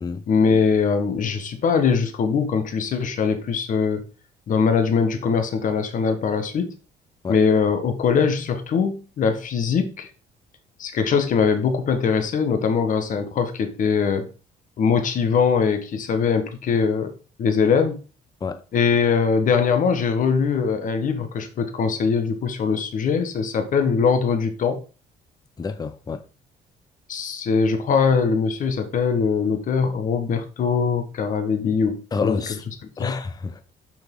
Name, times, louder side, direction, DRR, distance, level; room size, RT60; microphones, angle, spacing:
voice 1, 0.3-4.0 4.5-6.7 7.3-10.1 10.8-14.3 14.8-17.1 17.4-18.0 18.7-24.8 27.1-32.4 33.0-33.2, left 6 dB, 50° left, 1.4 m, -22 dB
voice 2, 25.6-26.2 32.1-32.6 33.0-33.6, left 4 dB, 25° left, 0.6 m, -28 dB
6.5 x 6.1 x 3.7 m
cardioid pair, 110°, 17 cm